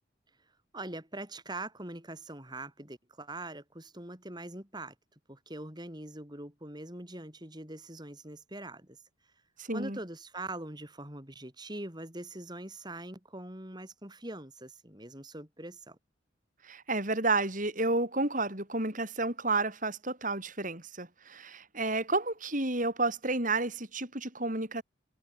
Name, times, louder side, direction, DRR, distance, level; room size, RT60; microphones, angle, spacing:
voice 1, 0.7-4.9 5.3-9.0 9.7-16.0, right 2 dB, 20° right, 4.8 m, -43 dB
voice 2, 9.6-10.0 16.6-24.8, right 2 dB, 40° right, 5.7 m, -31 dB
head